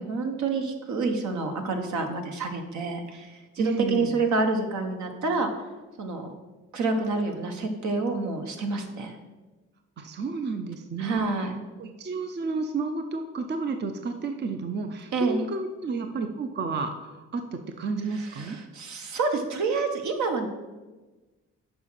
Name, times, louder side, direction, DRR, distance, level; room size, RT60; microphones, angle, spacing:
voice 1, 0.0-5.6 6.0-6.3 6.7-9.2 11.0-11.5 15.1-15.5 18.3-20.5, right 3 dB, 70° right, 4 dB, 1.2 m, -28 dB
voice 2, 3.6-4.1 10.0-11.3 11.8-18.6, right 4 dB, 35° right, 6 dB, 0.6 m, -31 dB
6.9 x 5.0 x 5.6 m, 1.2 s
cardioid pair, 90°, 30 cm